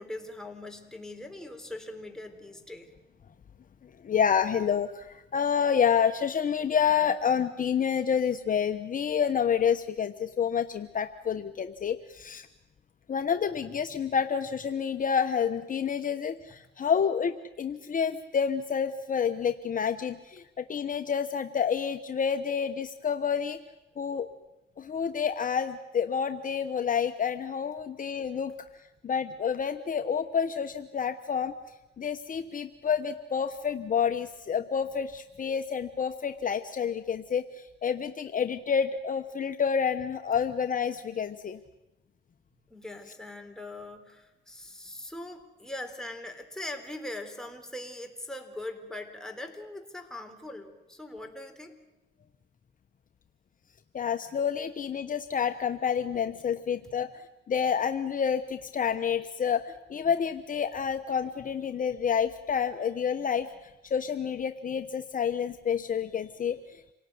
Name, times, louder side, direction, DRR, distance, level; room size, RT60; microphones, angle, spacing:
voice 1, 0.0-2.9 42.7-51.8, left 1 dB, 5° left, 4 dB, 3.7 m, -41 dB
voice 2, 4.0-12.5 13.1-23.6 24.0-24.3 24.8-28.7 29.0-31.5 32.0-41.6 53.9-57.1 57.5-63.5 63.8-66.9, left 7 dB, 40° left, 8 dB, 1.0 m, -28 dB
27.5 x 18.5 x 9.4 m, 1.0 s
cardioid pair, 90°, 20 cm